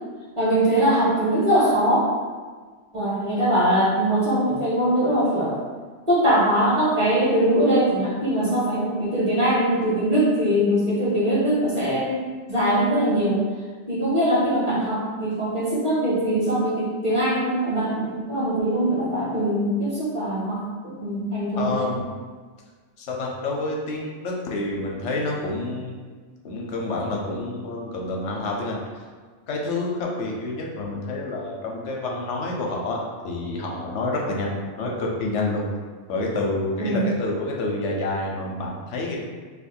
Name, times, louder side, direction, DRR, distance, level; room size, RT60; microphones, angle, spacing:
voice 1, 0.4-2.1 2.9-5.6 6.1-12.2 12.5-13.4 13.9-20.6 20.8-21.9 36.8-37.1, right 1 dB, 25° right, -10 dB, 1.4 m, -22 dB
voice 2, 21.6-22.1 23.0-25.9 26.4-28.8 29.5-33.0 33.2-34.5 34.8-35.7 36.1-39.2, left 2 dB, 80° left, -1 dB, 0.9 m, -28 dB
2.7 x 2.5 x 4.2 m, 1.5 s
omnidirectional pair, 1.2 m